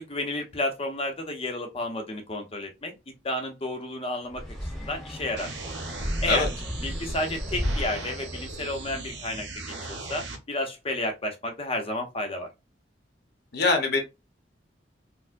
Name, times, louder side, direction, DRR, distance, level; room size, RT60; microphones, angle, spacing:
voice 1, 0.0-2.9 3.2-4.4 4.8-5.5 6.2-6.5 6.8-9.5 9.9-12.5, left 1 dB, 30° left, 0.7 m, -31 dB
sound 1, 4.3-9.2, equal, ahead, 1.0 m, -34 dB
sound 2, 5.4-10.4, right 3 dB, 80° right, 0.9 m, -39 dB
voice 2, 13.5-14.0, left 3 dB, 60° left, 0.8 m, -23 dB
4.3 x 2.0 x 2.5 m
head